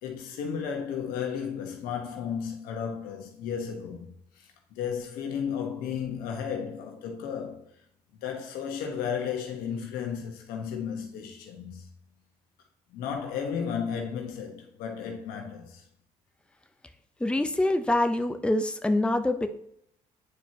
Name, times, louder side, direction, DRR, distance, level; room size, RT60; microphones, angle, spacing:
voice 1, 0.0-7.6 8.2-11.9 12.9-15.8, left 7 dB, 85° left, 1.3 m, -34 dB
voice 2, 17.2-19.5, left 1 dB, 5° left, 0.7 m, -25 dB
9.1 x 4.6 x 2.9 m
supercardioid pair, 70°, 15 cm